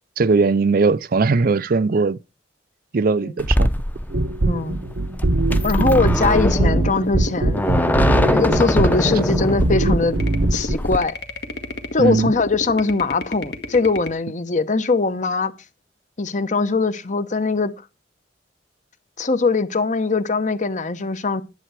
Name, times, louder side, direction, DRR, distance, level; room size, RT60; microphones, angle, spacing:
voice 1, 0.2-2.2 2.9-3.7 12.0-12.3, right 4 dB, 55° right, 0.5 m, -19 dB
sound 1, 3.4-11.0, left 1 dB, 10° left, 0.7 m, -22 dB
sound 2, 4.1-10.8, right 2 dB, 70° right, 0.9 m, -22 dB
voice 2, 4.5-4.8 5.6-7.6 8.3-10.2 10.5-11.1 11.9-15.5 16.2-17.7 19.2-21.4, left 3 dB, 45° left, 0.9 m, -21 dB
sound 3, 6.2-14.1, left 1 dB, 65° left, 1.5 m, -30 dB
11.0 x 7.8 x 4.8 m
head